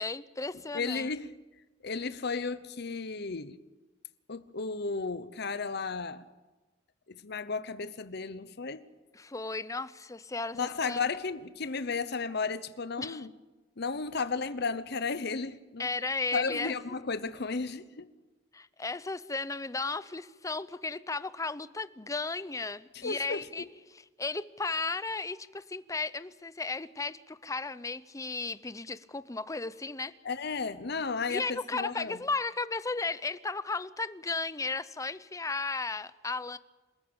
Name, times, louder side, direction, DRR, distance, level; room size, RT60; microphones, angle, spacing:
voice 1, 0.0-1.1 9.1-11.0 13.0-13.3 15.8-16.7 18.5-30.1 31.3-36.6, left 3 dB, 15° left, 0.6 m, -35 dB
voice 2, 0.7-1.3 1.8-3.6 4.3-6.2 7.1-8.9 10.5-13.3 13.8-15.9 16.3-18.1 22.9-23.7 30.2-32.2, left 4 dB, 60° left, 0.9 m, -34 dB
27.0 x 14.5 x 8.8 m
head